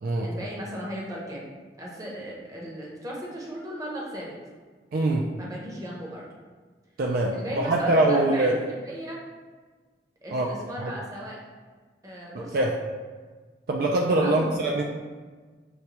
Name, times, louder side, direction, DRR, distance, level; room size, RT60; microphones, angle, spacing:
voice 1, 0.2-1.5 1.8-4.4 5.3-6.3 7.3-9.2 10.2-11.4 12.0-12.7 14.2-14.6, equal, 20° right, -3 dB, 0.7 m, -36 dB
voice 2, 4.9-5.3 7.0-8.6 10.3-10.5 10.8-10.9 12.3-12.7 13.7-14.8, right 2 dB, 55° right, 0 dB, 0.3 m, -23 dB
6.4 x 2.2 x 2.9 m, 1.4 s
head